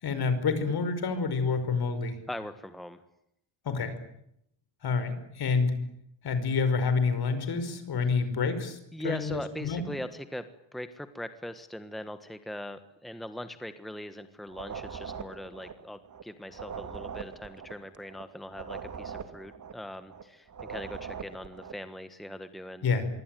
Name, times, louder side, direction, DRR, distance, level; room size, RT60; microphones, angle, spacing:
voice 1, 0.0-2.2 3.7-3.9 4.8-5.7 6.2-8.8 9.0-9.8 22.8-23.1, left 4 dB, 55° left, 11 dB, 5.4 m, -28 dB
voice 2, 2.3-3.0 8.9-10.4 10.7-22.9, equal, ahead, 10 dB, 1.4 m, -40 dB
sound 1, 14.5-21.8, right 6 dB, 40° right, 2.6 m, -41 dB
26.0 x 23.5 x 9.3 m, 0.76 s
cardioid pair, 150°, 45 cm